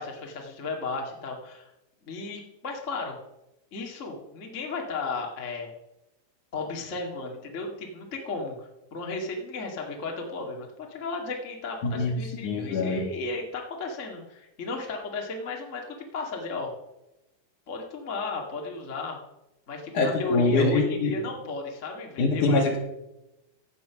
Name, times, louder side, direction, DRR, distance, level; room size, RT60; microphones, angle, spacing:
voice 1, 0.0-1.7 2.0-3.2 3.7-5.7 6.5-16.7 17.7-19.2 19.7-22.6, left 3 dB, 30° left, 0 dB, 1.4 m, -34 dB
voice 2, 12.4-13.1 19.9-21.1 22.2-22.8, left 3 dB, 55° left, 1 dB, 3.4 m, -24 dB
16.0 x 9.3 x 5.8 m, 0.95 s
omnidirectional pair, 4.6 m